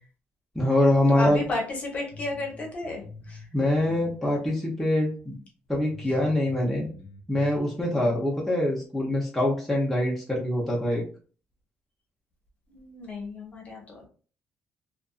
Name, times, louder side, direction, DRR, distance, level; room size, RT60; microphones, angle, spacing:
voice 1, 0.5-1.4 3.5-5.4 5.7-6.9 7.3-11.0, left 1 dB, ahead, -4 dB, 0.7 m, -24 dB
voice 2, 1.1-3.5 3.9-4.0 7.9-8.1 12.7-14.1, left 2 dB, 35° left, 0 dB, 1.0 m, -33 dB
sound 1, 2.1-4.2 4.5-4.6 5.2-5.3 5.7-7.6, left 3 dB, 85° left, 0.5 m, -45 dB
2.5 x 2.4 x 2.3 m, 0.40 s
cardioid pair, 130°, 4 cm